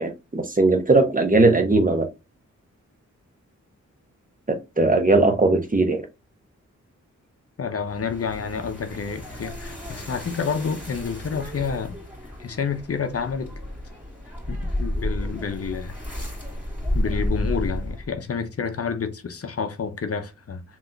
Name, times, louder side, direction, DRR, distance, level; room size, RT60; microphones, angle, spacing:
voice 1, 0.0-2.1 4.5-6.1, right 2 dB, 25° right, 1.1 m, -19 dB
voice 2, 7.6-12.0 12.4-13.5 14.5-15.9 16.9-20.6, left 6 dB, 50° left, 0.7 m, -29 dB
sound 1, 7.8-18.2, left 1 dB, 5° right, 2.5 m, -32 dB
3.5 x 3.0 x 3.9 m
cardioid pair, 65°, 30 cm